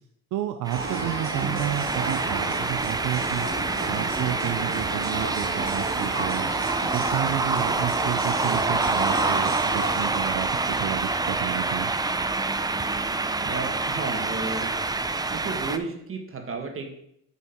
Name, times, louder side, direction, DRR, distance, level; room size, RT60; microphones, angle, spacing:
voice 1, 0.3-3.5 3.9-6.5 6.9-11.9, right 12 dB, 80° right, 8 dB, 0.5 m, -31 dB
sound 1, 0.7-15.8, right 3 dB, 15° right, 0.4 m, -27 dB
sound 2, 0.7-10.1, right 3 dB, 60° right, 1.7 m, -33 dB
voice 2, 13.4-14.7 15.3-16.9, right 4 dB, 45° right, 4 dB, 1.4 m, -33 dB
6.1 x 5.4 x 4.4 m, 0.74 s
cardioid pair, 90°, 30 cm